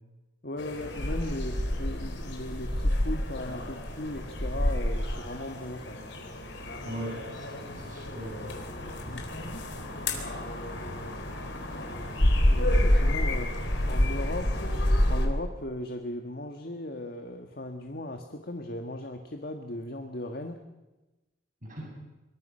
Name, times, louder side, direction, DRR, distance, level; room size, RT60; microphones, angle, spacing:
voice 1, 0.4-6.0 8.8-9.3 12.5-13.5 13.9-14.8 15.1-20.6, left 1 dB, 50° left, 5 dB, 1.6 m, -37 dB
sound 1, 0.6-15.3, left 1 dB, 70° left, 3.9 m, -29 dB
voice 2, 6.8-8.5 21.6-21.9, right 1 dB, 45° right, -2 dB, 6.6 m, -39 dB
25.0 x 23.0 x 5.6 m, 1.1 s
head